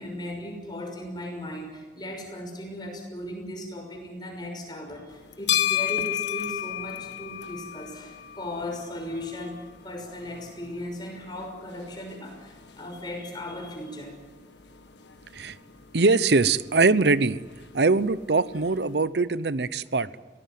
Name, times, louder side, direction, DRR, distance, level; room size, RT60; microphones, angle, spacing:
voice 1, 0.0-14.2, left 1 dB, 25° left, 3 dB, 6.0 m, -37 dB
sound 1, 5.1-19.0, left 11 dB, 85° left, 1.6 m, -35 dB
voice 2, 15.9-17.4 17.7-20.1, right 3 dB, 70° right, 17 dB, 0.8 m, -22 dB
23.5 x 18.5 x 9.4 m, 1.3 s
head